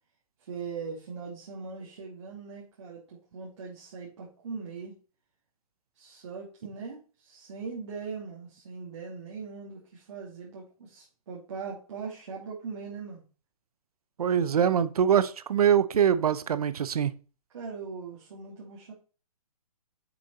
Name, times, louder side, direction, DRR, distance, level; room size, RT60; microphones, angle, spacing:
voice 1, 0.4-4.9 6.0-13.2 17.5-18.9, right 5 dB, 50° right, 3.0 m, -40 dB
voice 2, 14.2-17.1, right 8 dB, 75° right, 0.9 m, -23 dB
7.7 x 6.6 x 4.3 m
hypercardioid pair, 175°, 19 cm